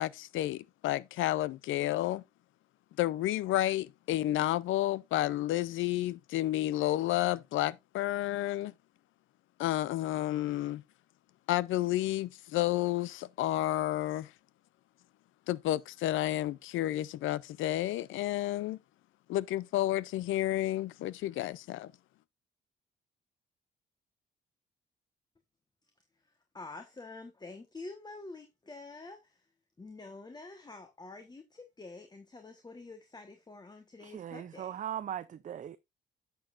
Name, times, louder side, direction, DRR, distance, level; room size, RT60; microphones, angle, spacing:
voice 1, 0.0-2.2 3.0-8.7 9.6-10.8 11.5-14.3 15.5-18.8 19.3-21.9, left 14 dB, 80° left, 0.5 m, -31 dB
voice 2, 26.5-29.4 29.8-34.8, left 3 dB, 20° left, 1.2 m, -47 dB
voice 3, 34.0-35.8, right 10 dB, 40° right, 0.4 m, -39 dB
10.5 x 6.8 x 2.5 m
cardioid pair, 90°, 20 cm